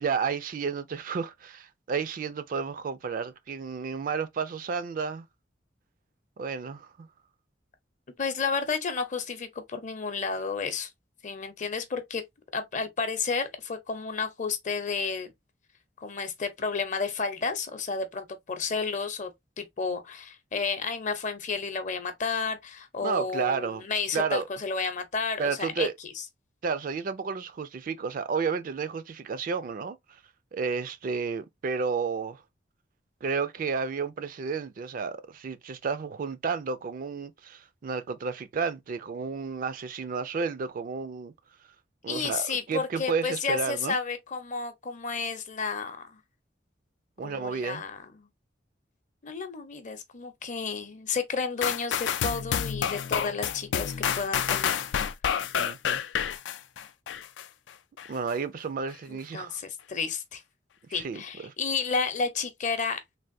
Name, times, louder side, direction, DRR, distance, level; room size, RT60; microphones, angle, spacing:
voice 1, 0.0-5.3 6.4-7.1 23.0-23.8 24.1-24.5 25.4-25.9 26.6-30.2 30.5-32.4 33.2-41.3 42.0-44.0 47.2-47.8 55.6-56.0 58.1-59.6 60.9-61.5, right 5 dB, 50° right, 0.4 m, -31 dB
voice 2, 8.2-10.9 11.2-12.2 12.5-15.3 16.0-19.3 19.6-25.9 26.2-26.3 42.1-46.2 47.2-48.3 49.2-54.8 59.1-60.4 60.9-63.0, left 5 dB, 45° left, 0.7 m, -31 dB
sound 1, 51.6-57.4 58.0-58.1, left 8 dB, 80° left, 0.4 m, -29 dB
3.3 x 2.5 x 2.6 m
head